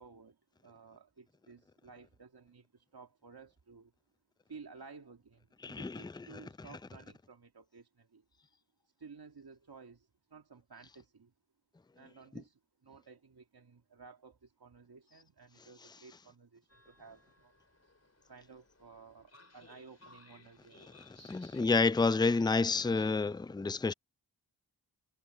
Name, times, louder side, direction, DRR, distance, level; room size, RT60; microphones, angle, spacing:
voice 1, 0.0-3.9 4.5-8.2 8.9-11.3 11.9-17.5 18.2-20.9, right 5 dB, 55° right, 2.0 m, -55 dB
voice 2, 5.6-6.0 21.3-23.9, left 3 dB, 10° left, 0.4 m, -29 dB
Train, 16.7-23.1, left 2 dB, 35° left, 3.2 m, -60 dB
cardioid pair, 50°, 44 cm